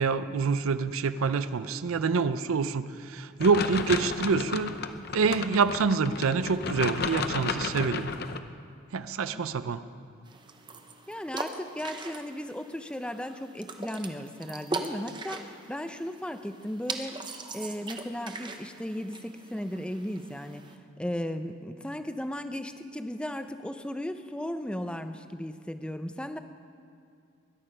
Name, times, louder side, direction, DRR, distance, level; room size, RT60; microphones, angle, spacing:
voice 1, 0.0-4.8 5.1-8.1 8.9-9.8, right 5 dB, 85° right, 13 dB, 0.5 m, -26 dB
sound 1, 3.4-8.4, left 5 dB, 50° left, 0.6 m, -33 dB
sound 2, 10.2-20.8, right 3 dB, 20° right, 0.8 m, -40 dB
voice 2, 11.1-17.2 17.5-20.7 21.0-26.4, equal, 5° left, 9 dB, 0.5 m, -36 dB
21.0 x 11.0 x 5.5 m, 2.4 s
head